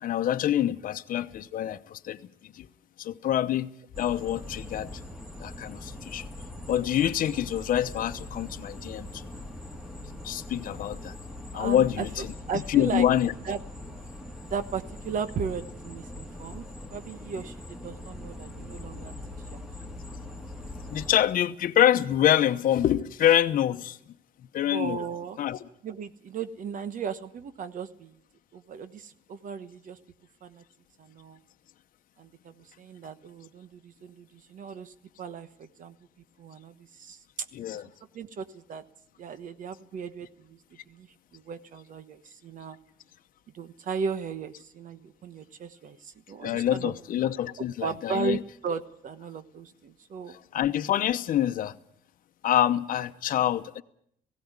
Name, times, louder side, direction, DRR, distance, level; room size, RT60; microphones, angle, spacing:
voice 1, 0.0-2.2 2.4-2.7 3.0-3.7 4.0-4.9 5.4-6.3 6.7-9.3 10.2-11.2 11.5-12.1 12.7-13.3 20.9-24.0 24.5-25.0 25.4-25.6 37.5-37.8 46.4-48.4 50.5-51.8 52.4-53.8, left 11 dB, 55° left, 0.9 m, -26 dB
sound 1, 3.9-21.1, left 1 dB, 5° right, 2.5 m, -42 dB
voice 2, 11.5-13.1 13.4-13.6 14.5-16.6 16.9-19.1 19.5-19.6 24.7-25.4 25.8-28.1 28.5-30.0 30.4-30.6 31.0-31.4 32.2-36.0 36.4-37.5 37.7-37.8 38.1-38.8 39.2-40.6 40.9-42.8 43.5-46.9 47.6-50.4, right 6 dB, 50° right, 1.2 m, -36 dB
17.5 x 16.5 x 9.6 m
cardioid pair, 110°, 17 cm